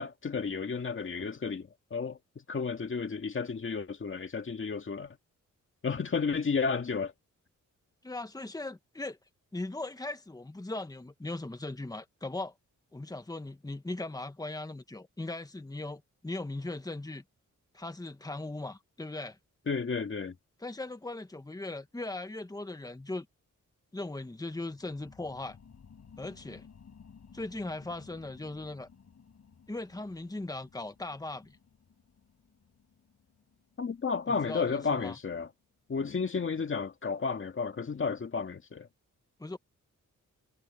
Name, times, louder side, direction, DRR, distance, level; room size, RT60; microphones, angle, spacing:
voice 1, 0.0-5.2 5.8-7.1 19.7-20.4 33.8-35.5 35.9-38.9, left 5 dB, 40° left, 2.0 m, -32 dB
voice 2, 8.0-9.2 9.5-12.5 12.9-17.2 17.7-19.4 20.6-23.2 23.9-25.6 26.2-26.6 27.3-28.9 29.7-31.6 34.3-35.2 39.4-39.6, left 2 dB, 10° left, 1.5 m, -39 dB
sound 1, 24.4-35.5 36.0-36.1, left 6 dB, 55° left, 7.7 m, -57 dB
wide cardioid pair, 120°, 31 cm